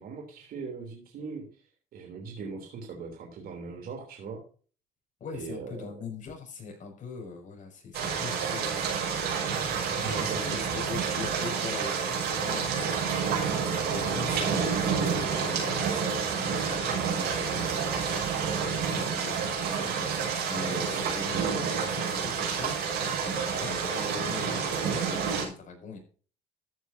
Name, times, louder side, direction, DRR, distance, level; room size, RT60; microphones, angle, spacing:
voice 1, 0.0-1.6 1.9-4.4 5.3-5.9 9.8-10.8 19.3-19.4, right 4 dB, 60° right, 1 dB, 3.2 m, -40 dB
voice 2, 5.2-8.9 10.0-22.8 23.2-26.0, left 4 dB, 50° left, 3 dB, 6.4 m, -41 dB
sound 1, 7.9-25.4, right 6 dB, 80° right, 6.1 m, -29 dB
14.0 x 9.5 x 2.7 m, 0.40 s
cardioid pair, 110°, 17 cm